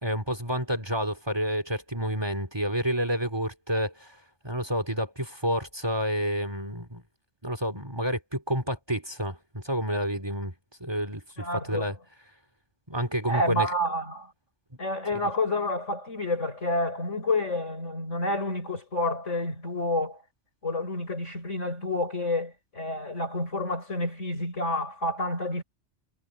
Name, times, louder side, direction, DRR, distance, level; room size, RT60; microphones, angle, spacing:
voice 1, 0.0-4.2 4.4-7.0 7.4-10.5 10.8-12.0 12.9-13.7 15.2-15.3, equal, 20° right, 2.7 m, -29 dB
voice 2, 11.4-11.9 13.3-14.3 14.8-20.2 20.6-25.6, left 1 dB, 80° left, 7.1 m, -29 dB
omnidirectional pair, 1.3 m